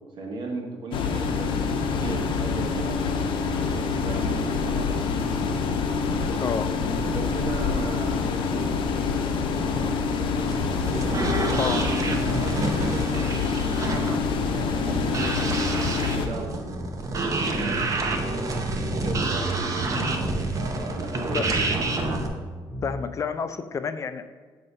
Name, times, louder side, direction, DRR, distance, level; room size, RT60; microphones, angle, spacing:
voice 1, 0.2-3.0 3.7-5.0 6.2-6.5 7.0-8.9 10.4-10.7 10.9-17.0 17.4-19.6 20.5-21.9, right 3 dB, 60° right, 0 dB, 1.3 m, -37 dB
Roomtone Warehouse Fans Vents Large, 0.9-16.3, left 5 dB, 70° left, 0.6 m, -26 dB
voice 2, 6.4-6.7 11.6-11.9 20.8-20.9 21.3-21.5 22.8-24.2, left 6 dB, 35° left, 10 dB, 0.4 m, -29 dB
sound 1, 10.4-22.3, right 2 dB, 40° right, 0.7 m, -28 dB
sound 2, 15.5-17.1 17.4-18.6 18.9-19.4 19.7-20.5 20.8-21.7 22.0-23.0, equal, 10° right, 2.0 m, -39 dB
7.5 x 2.8 x 5.4 m, 1.4 s
cardioid pair, 110°, 9 cm